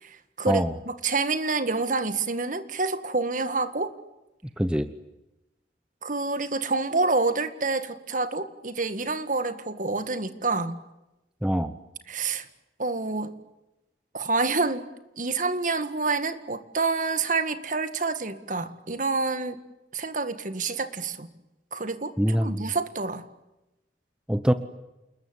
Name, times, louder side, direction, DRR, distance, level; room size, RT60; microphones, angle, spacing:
voice 1, 0.0-3.9 6.0-10.8 12.1-12.5 12.8-13.3 14.1-14.8 15.2-19.6 19.9-21.3 21.7-23.3, right 3 dB, 45° right, 10 dB, 1.9 m, -28 dB
voice 2, 4.6-4.9 11.4-11.7 22.2-22.7 24.3-24.5, equal, 5° right, 10 dB, 0.9 m, -24 dB
28.5 x 21.0 x 9.7 m, 0.97 s
head